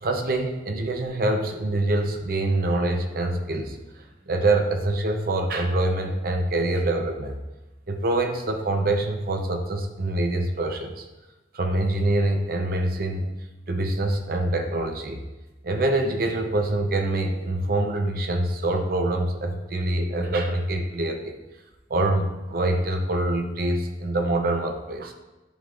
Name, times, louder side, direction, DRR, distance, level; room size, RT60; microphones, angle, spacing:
voice 1, 0.0-3.8 4.3-7.4 7.9-11.0 11.5-13.3 13.7-15.2 15.6-21.4 21.9-25.1, right 2 dB, 55° right, 4 dB, 0.6 m, -25 dB
10.5 x 3.8 x 2.4 m, 1.1 s
head